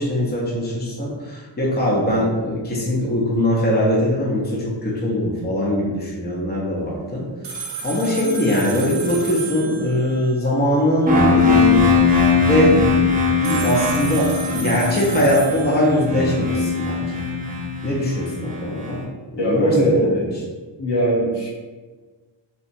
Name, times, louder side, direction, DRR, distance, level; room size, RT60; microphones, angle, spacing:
voice 1, 0.0-7.2 7.8-11.9 12.4-13.0 13.4-14.3 14.5-17.2 17.8-19.1 19.4-20.1, left 1 dB, 20° left, -4 dB, 0.6 m, -21 dB
sound 1, 7.4-10.4 13.4-16.3, right 4 dB, 75° right, 0.7 m, -33 dB
sound 2, 11.1-18.9, left 4 dB, 20° right, 0.4 m, -20 dB
voice 2, 19.4-20.3 20.8-21.5, right 1 dB, 65° left, -5 dB, 0.9 m, -19 dB
2.9 x 2.2 x 2.5 m, 1.4 s
wide cardioid pair, 60°, 45 cm